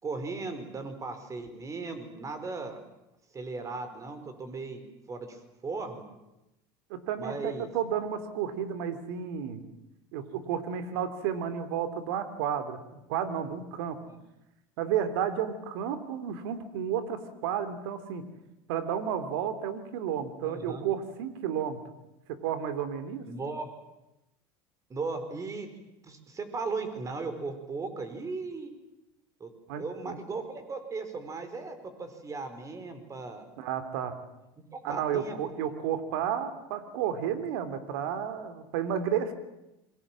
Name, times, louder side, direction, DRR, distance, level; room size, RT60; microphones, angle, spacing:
voice 1, 0.0-2.8 3.3-6.0 7.2-7.7 14.1-14.2 20.4-20.8 23.2-23.7 24.9-25.7 26.0-28.7 29.4-29.5 29.8-33.4 34.7-35.4, right 3 dB, 25° right, 9 dB, 4.8 m, -37 dB
voice 2, 6.9-9.6 10.1-14.0 14.8-18.2 18.7-21.8 22.3-23.3 29.7-30.2 33.6-34.2 34.8-39.3, right 8 dB, 80° right, 11 dB, 3.0 m, -32 dB
27.0 x 23.5 x 7.6 m, 0.93 s
supercardioid pair, 110°, 12 cm